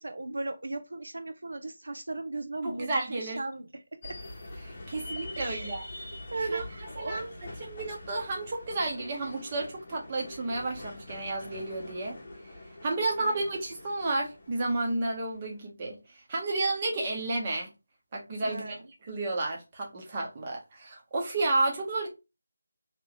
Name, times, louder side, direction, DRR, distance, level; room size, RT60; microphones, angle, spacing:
voice 1, 0.0-4.2 5.4-5.7 6.3-7.5 13.2-13.4 18.4-18.9, right 2 dB, 80° right, 0.6 m, -37 dB
voice 2, 2.6-3.4 4.6-5.8 6.5-6.6 7.0-7.2 7.7-12.2 12.8-16.0 16.3-17.7 18.1-18.8 19.1-22.1, right 2 dB, 20° right, 0.9 m, -31 dB
sound 1, 4.0-15.6, left 2 dB, 30° left, 0.9 m, -44 dB
2.9 x 2.4 x 3.9 m
figure-of-eight pair, 175°, 0 cm